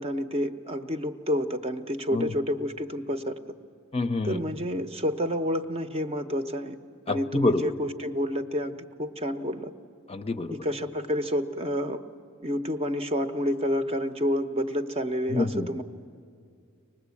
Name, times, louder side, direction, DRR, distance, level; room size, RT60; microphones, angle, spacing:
voice 1, 0.0-3.4 4.2-6.8 7.1-9.7 10.5-12.0 12.4-15.8, equal, 30° right, 8 dB, 0.9 m, -29 dB
voice 2, 3.9-4.4 7.1-7.6 10.1-10.6 15.3-15.7, left 2 dB, 25° left, 9 dB, 0.7 m, -26 dB
24.5 x 19.5 x 8.4 m, 2.3 s
head